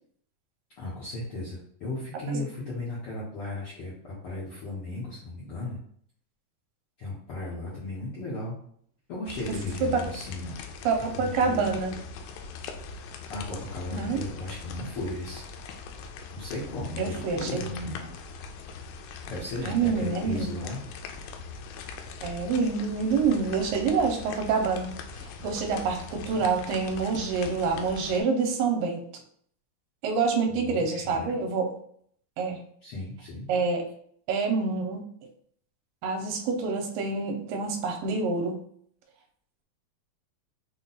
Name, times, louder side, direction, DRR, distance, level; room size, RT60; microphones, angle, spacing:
voice 1, 0.8-5.8 7.0-8.5 9.1-10.6 11.2-11.8 13.3-15.4 16.3-18.0 19.3-20.8 26.4-26.5 30.5-31.3 32.8-33.5, left 2 dB, 65° left, -8 dB, 1.3 m, -36 dB
sound 1, 9.3-28.2, left 5 dB, 90° left, 2.4 m, -41 dB
voice 2, 10.9-12.0 13.9-14.2 17.0-18.1 19.7-20.5 22.2-24.9 25.2-29.0 30.0-31.8 32.4-32.6 33.5-33.9 34.3-35.0 36.0-38.5, right 5 dB, 85° right, 3 dB, 2.4 m, -27 dB
5.9 x 2.3 x 4.0 m, 0.63 s
omnidirectional pair, 4.1 m